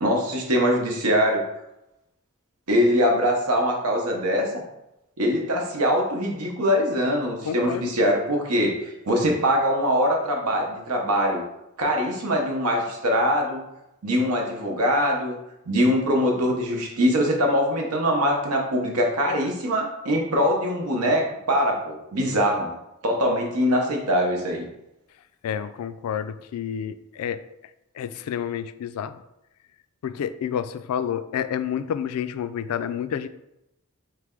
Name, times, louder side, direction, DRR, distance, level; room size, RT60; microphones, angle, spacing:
voice 1, 0.0-1.5 2.7-4.6 5.2-11.4 11.8-13.6 14.0-15.4 15.7-22.8 23.0-24.6, equal, 90° right, 1 dB, 0.9 m, -23 dB
voice 2, 7.4-7.9 25.4-27.4 28.0-29.2 30.0-33.3, left 8 dB, 80° left, 15 dB, 0.3 m, -29 dB
3.3 x 3.3 x 3.7 m, 0.87 s
head